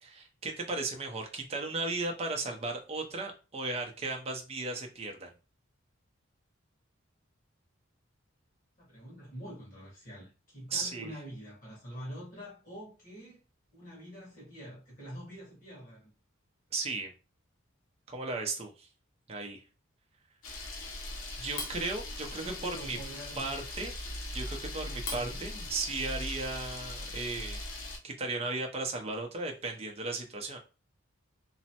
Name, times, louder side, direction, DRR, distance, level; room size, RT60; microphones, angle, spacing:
voice 1, 0.0-5.3 10.7-11.1 16.7-17.1 18.1-18.9 19.3-19.6 21.4-23.0 23.4-23.9 24.3-30.6, right 3 dB, 30° right, 0.5 m, -36 dB
voice 2, 8.8-13.4 13.7-16.1 22.4-23.6 25.1-25.5, equal, 40° left, 1.6 m, -46 dB
Camera, 20.4-28.0, left 2 dB, 80° left, 0.7 m, -40 dB
3.1 x 2.0 x 2.8 m
head